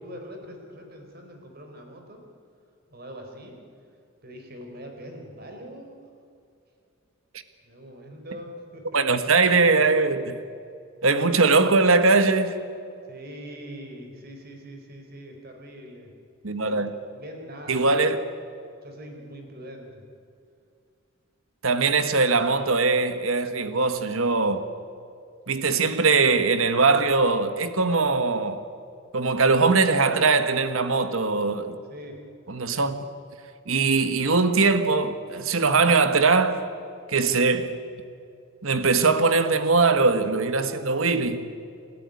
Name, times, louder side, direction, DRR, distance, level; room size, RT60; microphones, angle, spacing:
voice 1, 0.0-2.2 2.9-3.6 4.2-6.1 7.6-9.1 13.1-16.1 16.6-16.8 17.1-17.9 18.8-20.0 31.9-32.3, equal, 45° right, 4.2 m, -42 dB
voice 2, 8.9-10.4 11.0-12.6 16.4-16.9 17.7-18.3 21.6-24.7 25.5-28.6 29.1-31.8 32.5-33.0 33.7-36.6 37.1-37.8 38.6-41.5, right 4 dB, 75° right, 1.4 m, -21 dB
29.5 x 12.5 x 9.6 m
head